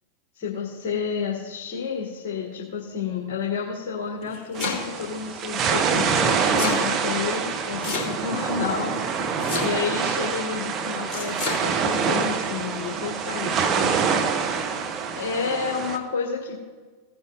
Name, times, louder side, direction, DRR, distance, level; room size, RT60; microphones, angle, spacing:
voice 1, 0.3-8.9 9.6-14.2 15.1-16.6, left 6 dB, 45° left, -2 dB, 2.1 m, -30 dB
Domestic sounds home sounds, 4.1-5.1 6.1-6.8 7.8-8.4 9.4-10.0 11.1-11.6, left 4 dB, 25° left, 3.6 m, -30 dB
sound 1, 4.5-16.0, right 6 dB, 30° right, 1.0 m, -26 dB
17.5 x 9.6 x 2.6 m, 1.4 s
figure-of-eight pair, 90°, 0 cm